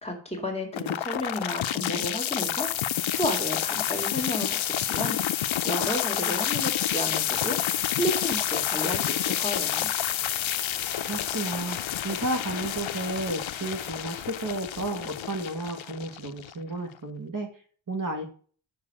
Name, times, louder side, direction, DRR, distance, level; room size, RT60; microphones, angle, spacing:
voice 1, 0.0-2.7 3.2-7.6 7.9-9.9, equal, 15° left, 1 dB, 2.4 m, -32 dB
sound 1, 0.7-16.8, left 11 dB, 80° left, 0.6 m, -29 dB
voice 2, 11.1-11.8 12.0-17.5 17.9-18.3, right 2 dB, 45° right, 3 dB, 1.9 m, -32 dB
6.7 x 6.6 x 7.6 m, 0.43 s
wide cardioid pair, 125°, 46 cm